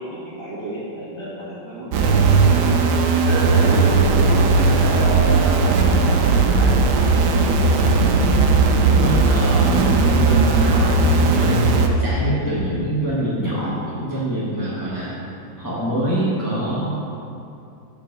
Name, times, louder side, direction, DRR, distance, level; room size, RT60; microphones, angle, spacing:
voice 1, 0.0-2.3 3.2-6.8, right 1 dB, 15° right, -10 dB, 1.8 m, -29 dB
sound 1, 1.9-11.9, right 4 dB, 75° right, 1.1 m, -17 dB
voice 2, 8.9-15.1 15.6-16.9, right 1 dB, 10° left, -11 dB, 1.2 m, -24 dB
5.7 x 5.3 x 6.0 m, 2.6 s
omnidirectional pair, 2.0 m